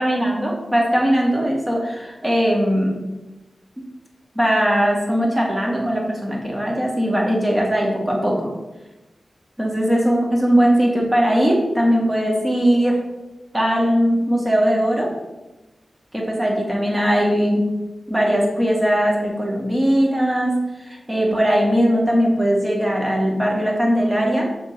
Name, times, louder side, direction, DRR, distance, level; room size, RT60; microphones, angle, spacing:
voice 1, 0.0-3.0 4.4-8.5 9.6-13.0 13.5-15.1 16.1-17.7 18.1-24.4, equal, 20° right, -1 dB, 1.8 m, -19 dB
6.8 x 3.6 x 5.7 m, 1.1 s
wide cardioid pair, 90°, 0 cm